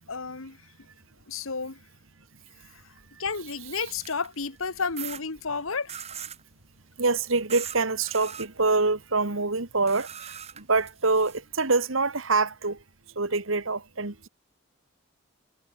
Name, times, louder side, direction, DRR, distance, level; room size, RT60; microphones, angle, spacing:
voice 1, 0.1-0.6 1.3-1.8 3.2-6.0, left 4 dB, 90° left, 1.6 m, -31 dB
sound 1, 3.3-4.3 5.0-5.2 5.9-6.4 7.5-7.8 8.1-8.5 9.9-11.4, right 9 dB, 30° right, 4.9 m, -40 dB
voice 2, 7.0-12.8 13.2-14.3, right 3 dB, 80° right, 2.1 m, -26 dB
head